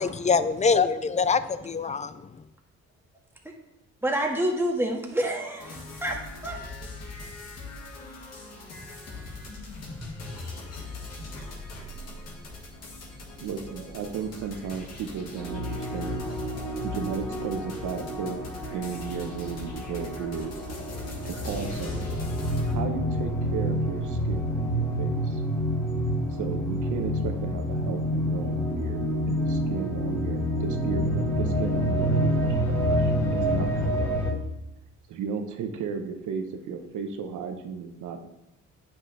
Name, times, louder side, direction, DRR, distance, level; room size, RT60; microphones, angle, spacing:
voice 1, 0.0-2.1, left 5 dB, 25° left, 14 dB, 0.4 m, -24 dB
voice 2, 4.0-6.2 6.4-6.6, right 1 dB, 10° right, 0 dB, 1.6 m, -27 dB
sound 1, 5.6-22.7, left 2 dB, 55° left, 1.9 m, -41 dB
voice 3, 13.4-16.2 16.8-18.4 18.7-20.5 21.2-22.1 22.7-25.4 26.3-34.2 35.1-38.2, right 6 dB, 80° right, 5 dB, 1.0 m, -35 dB
sound 2, 15.4-34.3, equal, 10° left, 1.7 m, -28 dB
9.2 x 5.9 x 3.3 m, 0.89 s
cardioid pair, 90°, 30 cm